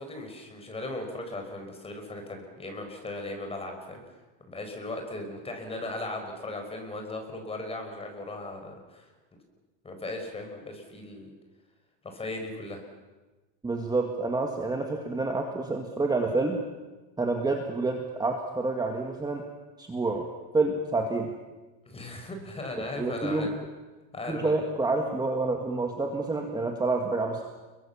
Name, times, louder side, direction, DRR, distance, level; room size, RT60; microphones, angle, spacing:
voice 1, 0.0-4.0 4.5-9.1 9.8-11.3 12.0-12.8 21.9-23.5 24.1-24.7, left 2 dB, 15° left, 4 dB, 5.1 m, -37 dB
voice 2, 13.6-16.6 17.2-19.4 19.8-20.3 20.5-21.3 22.8-23.5 24.3-27.4, right 3 dB, 10° right, 2 dB, 2.0 m, -28 dB
30.0 x 22.5 x 7.2 m, 1.2 s
cardioid pair, 150°, 36 cm